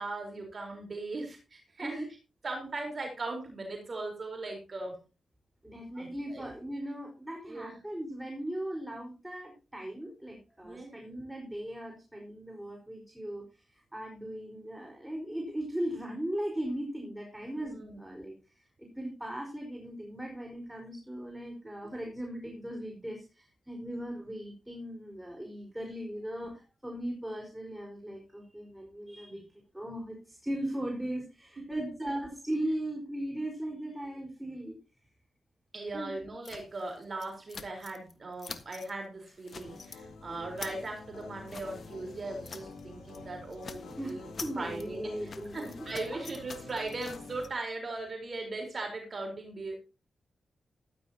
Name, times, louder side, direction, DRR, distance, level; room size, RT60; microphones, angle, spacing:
voice 1, 0.0-2.0 2.4-5.0 5.9-6.4 7.5-7.7 10.6-10.9 17.5-18.0 29.3-29.4 31.6-31.8 35.7-44.3 44.6-49.8, right 2 dB, 50° right, 2 dB, 4.2 m, -39 dB
voice 2, 5.6-34.8 35.9-36.2 44.0-45.7, right 1 dB, 10° right, 0 dB, 4.6 m, -38 dB
sound 1, 36.4-38.1 38.4-38.9 39.3-40.0 40.3-42.8 43.1-43.3 43.5-47.5, left 5 dB, 60° left, 1.5 m, -47 dB
sound 2, 39.6-47.5, left 3 dB, 85° left, 4.0 m, -48 dB
14.5 x 12.0 x 2.9 m, 0.30 s
cardioid pair, 50°, 0 cm